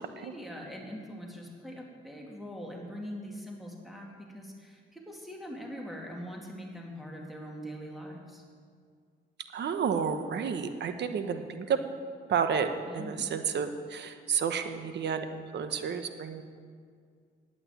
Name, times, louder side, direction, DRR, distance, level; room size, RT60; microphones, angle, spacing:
voice 1, 0.0-8.4 12.9-13.3, equal, ahead, -1 dB, 2.5 m, -42 dB
voice 2, 9.5-11.8 12.3-16.4, right 6 dB, 60° right, 8 dB, 1.1 m, -31 dB
8.9 x 8.7 x 9.2 m, 2.1 s
cardioid pair, 90°, 20 cm